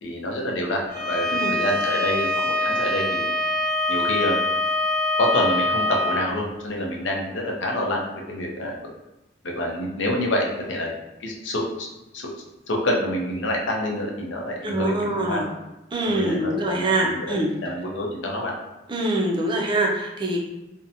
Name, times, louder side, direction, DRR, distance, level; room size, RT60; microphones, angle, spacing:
voice 1, 0.0-3.3 3.9-4.4 5.2-8.0 8.3-8.7 9.4-10.9 11.2-11.9 12.1-12.3 12.7-15.5 16.1-17.4 17.6-18.5, left 1 dB, 90° left, -1 dB, 0.6 m, -27 dB
Bowed string instrument, 0.9-6.2, left 1 dB, 70° left, 1.2 m, -24 dB
voice 2, 14.6-15.4 15.9-17.5 18.9-20.4, right 1 dB, 25° right, -1 dB, 0.4 m, -24 dB
2.7 x 2.1 x 2.6 m, 0.98 s
head